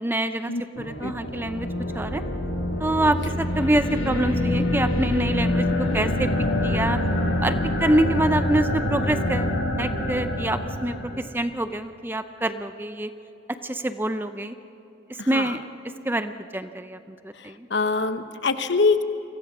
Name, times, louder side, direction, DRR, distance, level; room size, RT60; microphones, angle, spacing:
voice 1, 0.0-1.7 1.9-2.2 2.8-6.3 6.6-7.0 7.4-9.5 9.8-13.1 13.6-14.6 15.3-15.6 16.0-17.0 17.2-17.7, right 1 dB, 10° right, 10 dB, 0.6 m, -26 dB
sound 1, 0.7-11.3, left 1 dB, 85° left, 7.8 m, -26 dB
voice 2, 15.2-15.6 17.3-19.0, left 4 dB, 65° left, 9 dB, 1.1 m, -24 dB
29.0 x 24.0 x 6.1 m, 2.8 s
head